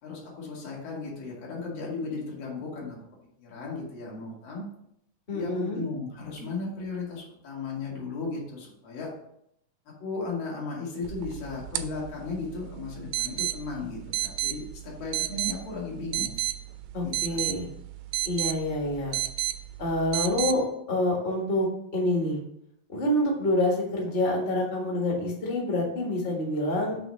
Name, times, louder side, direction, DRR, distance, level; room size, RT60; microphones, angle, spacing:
voice 1, 0.0-3.0 3.4-4.6 5.3-9.1 10.0-16.3 17.0-17.1, left 3 dB, 85° left, -4 dB, 3.6 m, -35 dB
voice 2, 5.3-5.8 16.9-17.7 18.3-19.2 19.8-22.4 22.9-27.0, left 1 dB, 55° left, -1 dB, 0.6 m, -27 dB
sound 1, 11.0-20.5, right 14 dB, 90° right, 2.2 m, -33 dB
8.1 x 3.1 x 5.4 m, 0.74 s
omnidirectional pair, 3.8 m